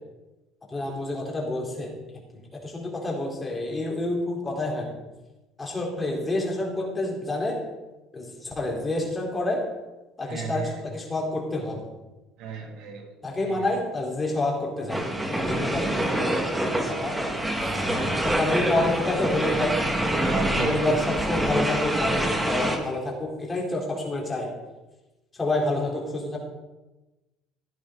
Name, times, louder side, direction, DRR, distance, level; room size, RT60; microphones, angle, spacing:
voice 1, 0.7-1.9 2.5-4.9 5.6-7.6 8.1-9.6 10.2-11.8 13.2-17.2 17.6-17.8 18.2-19.8 20.7-24.5 25.4-26.4, left 2 dB, 20° left, -2 dB, 4.2 m, -28 dB
voice 2, 10.3-10.7 12.4-13.1 13.5-13.7 16.3-16.4 20.1-20.7, right 5 dB, 70° right, 2 dB, 2.6 m, -34 dB
sound 1, 14.9-22.8, right 1 dB, 10° right, 1.9 m, -26 dB
16.0 x 10.5 x 4.0 m, 1.1 s
supercardioid pair, 110°, 0 cm